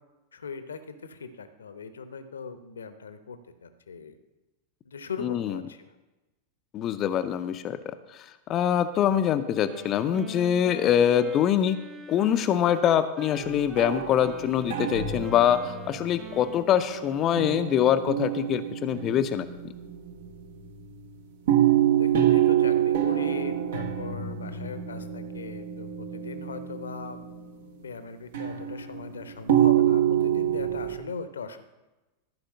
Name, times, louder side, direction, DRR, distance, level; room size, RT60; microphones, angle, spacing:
voice 1, 0.3-4.2 4.8-5.9 21.8-31.6, left 5 dB, 70° left, 10 dB, 0.9 m, -40 dB
voice 2, 5.2-5.6 6.7-7.9 8.5-11.8 12.1-19.5, left 9 dB, 30° left, 10 dB, 0.5 m, -24 dB
Wind instrument woodwind instrument, 9.5-17.7, right 5 dB, 20° right, 1.4 m, -43 dB
sound 1, 13.4-16.9 17.4-20.6 21.5-27.6 28.3-31.0, right 11 dB, 60° right, 1.2 m, -26 dB
14.0 x 5.0 x 6.4 m, 1.1 s
figure-of-eight pair, 90°, 0 cm